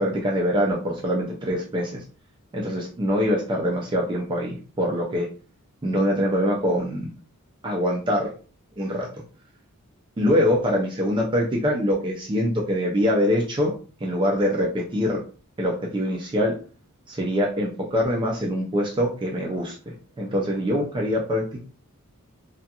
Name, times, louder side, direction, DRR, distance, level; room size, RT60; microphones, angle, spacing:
voice 1, 0.0-2.0 2.5-5.3 5.8-7.1 7.6-8.3 8.8-9.1 10.2-13.7 14.0-15.2 15.6-16.5 17.1-21.6, equal, 20° right, -1 dB, 0.4 m, -24 dB
2.4 x 2.2 x 2.8 m, 0.38 s
head